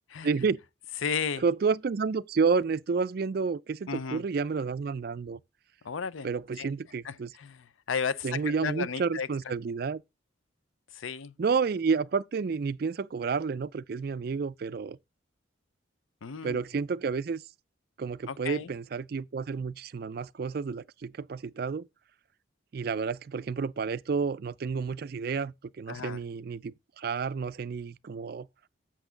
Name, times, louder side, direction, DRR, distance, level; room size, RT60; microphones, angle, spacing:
voice 1, 0.2-0.6 1.4-5.4 6.2-7.3 8.2-10.0 11.4-15.0 16.4-17.4 18.0-21.9 22.7-28.5, right 5 dB, 50° right, 0.3 m, -30 dB
voice 2, 1.0-1.4 3.9-4.2 5.8-6.3 6.6-6.7 7.0-9.3 10.9-11.3 16.2-16.6 18.3-18.7 25.9-26.2, left 6 dB, 80° left, 0.5 m, -34 dB
8.3 x 6.0 x 3.8 m
head